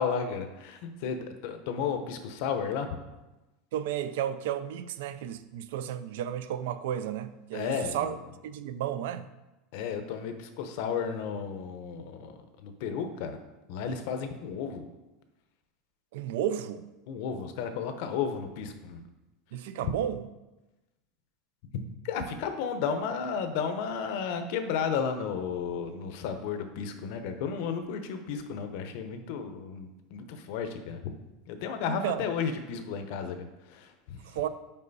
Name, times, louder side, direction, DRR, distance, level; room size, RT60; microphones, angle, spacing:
voice 1, 0.0-3.0 7.5-8.2 9.7-13.4 13.7-14.9 17.1-19.0 21.7-31.1 31.5-34.4, left 6 dB, 55° left, 0.7 m, -33 dB
voice 2, 3.7-8.2 8.4-9.3 16.1-16.9 19.5-20.3 31.9-32.2 34.2-34.5, right 10 dB, 75° right, 0.4 m, -33 dB
5.5 x 4.8 x 4.0 m
supercardioid pair, 175°, 0 cm